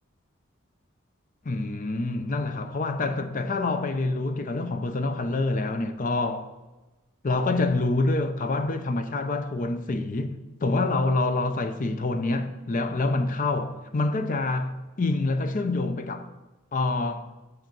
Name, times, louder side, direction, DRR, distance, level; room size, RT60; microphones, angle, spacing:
voice 1, 1.4-6.5 7.2-16.3 16.7-17.3, left 2 dB, 40° left, 0.6 m, -26 dB
7.9 x 6.4 x 6.0 m
head